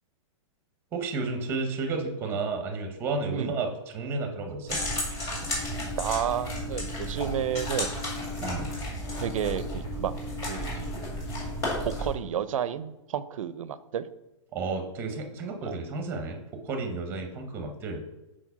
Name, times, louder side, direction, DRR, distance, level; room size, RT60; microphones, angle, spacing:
voice 1, 0.9-4.8 8.4-8.7 14.5-16.4 16.6-18.0, right 3 dB, 15° right, 5 dB, 0.7 m, -32 dB
sound 1, 4.7-12.1, left 1 dB, 20° left, 2.0 m, -33 dB
voice 2, 6.0-7.9 9.2-10.1 10.4-11.0 11.9-14.1 15.6-15.8, right 9 dB, 90° right, 15 dB, 0.4 m, -31 dB
4.6 x 4.3 x 5.6 m, 0.96 s
hypercardioid pair, 165°, 17 cm